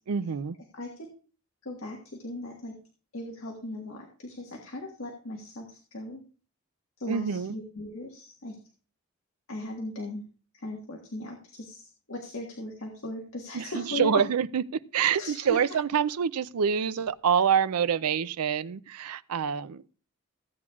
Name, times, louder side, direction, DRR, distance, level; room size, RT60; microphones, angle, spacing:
voice 1, 0.1-0.6 7.1-7.5 13.5-19.9, right 7 dB, 90° right, 0.5 m, -26 dB
voice 2, 0.7-1.1 1.6-2.7 3.1-6.2 7.0-8.6 9.5-10.2 10.5-14.2 15.2-15.6, left 1 dB, 70° left, 1.6 m, -38 dB
15.5 x 8.4 x 2.4 m
head